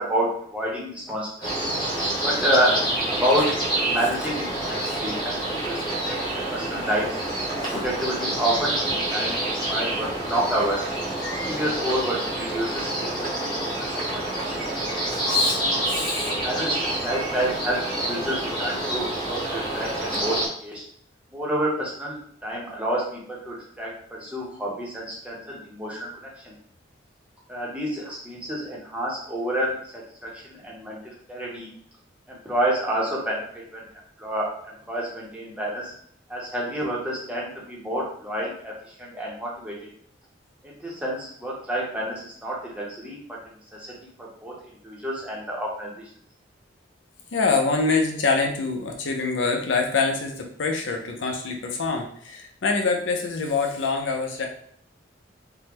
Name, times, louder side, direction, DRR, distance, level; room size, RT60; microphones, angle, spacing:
voice 1, 0.0-1.7 2.2-5.8 6.1-7.2 7.6-8.8 9.1-10.8 11.3-14.7 16.3-20.8 21.3-26.1 26.4-26.6 27.5-31.7 32.3-33.8 34.2-35.9 36.3-39.7 40.6-43.2 43.7-44.5 44.8-45.9, right 1 dB, 5° right, -4 dB, 0.7 m, -29 dB
sound 1, 1.4-20.5, right 1 dB, 25° left, 1.1 m, -27 dB
voice 2, 15.9-16.3 47.3-54.5, left 4 dB, 85° left, 2 dB, 0.6 m, -25 dB
3.5 x 2.1 x 2.9 m, 0.63 s
head